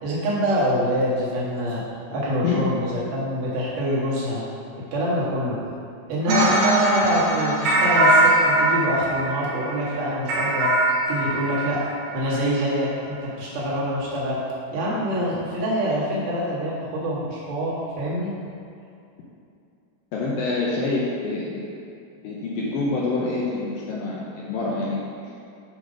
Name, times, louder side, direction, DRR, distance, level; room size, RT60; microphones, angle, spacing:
voice 1, 0.0-1.8 2.1-4.4 4.8-5.6 6.1-10.7 11.1-11.8 12.1-14.4 14.7-18.3, equal, 60° right, -7 dB, 2.9 m, -25 dB
sound 1, 6.3-12.4, right 1 dB, 80° right, 3.3 m, -21 dB
voice 2, 20.1-21.6 22.2-25.1, left 3 dB, 75° left, -5 dB, 2.2 m, -26 dB
8.2 x 5.0 x 5.2 m, 2.6 s
omnidirectional pair, 4.9 m